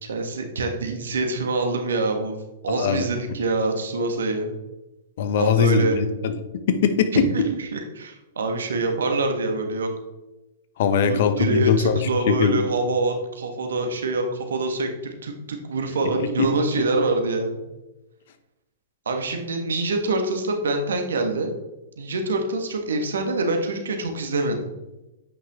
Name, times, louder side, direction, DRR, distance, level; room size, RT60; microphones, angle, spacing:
voice 1, 0.0-2.4 2.6-4.5 5.4-6.0 7.1-7.2 7.7-9.9 11.1-17.6 19.0-21.5 22.0-24.7, right 2 dB, 75° right, 4 dB, 1.6 m, -25 dB
voice 2, 2.7-3.0 5.2-7.5 10.8-12.6 16.2-16.5 16.8-16.9, left 6 dB, 60° left, 10 dB, 0.9 m, -21 dB
9.0 x 5.7 x 3.6 m, 0.99 s
hypercardioid pair, 115°, 0 cm